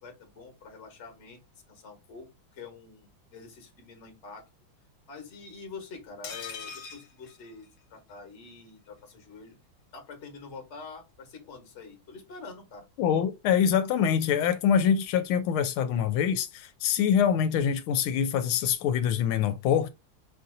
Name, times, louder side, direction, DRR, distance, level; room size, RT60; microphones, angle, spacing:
voice 1, 0.0-4.5 5.1-9.6 9.9-12.9, left 4 dB, 40° left, 1.3 m, -46 dB
sound 1, 6.2-8.2 8.5-8.6 8.9-9.0, left 7 dB, 65° left, 1.5 m, -42 dB
voice 2, 13.0-19.9, left 8 dB, 85° left, 1.4 m, -25 dB
5.5 x 2.7 x 2.6 m
omnidirectional pair, 2.3 m